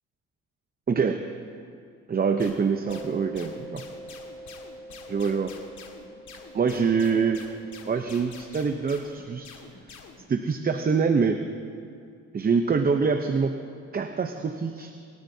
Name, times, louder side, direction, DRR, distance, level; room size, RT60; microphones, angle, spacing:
voice 1, 0.9-1.3 2.1-3.8 5.1-5.5 6.5-7.5 7.9-9.5 9.9-10.0 10.3-11.4 12.3-13.6 13.9-14.9, right 5 dB, 30° right, 6 dB, 0.7 m, -25 dB
sound 1, 2.4-10.3, left 5 dB, 70° left, 1.9 m, -47 dB
Mallet percussion, 2.9-9.2, right 1 dB, 5° right, 1.1 m, -45 dB
27.0 x 13.0 x 2.7 m, 2.3 s
cardioid pair, 90°, 30 cm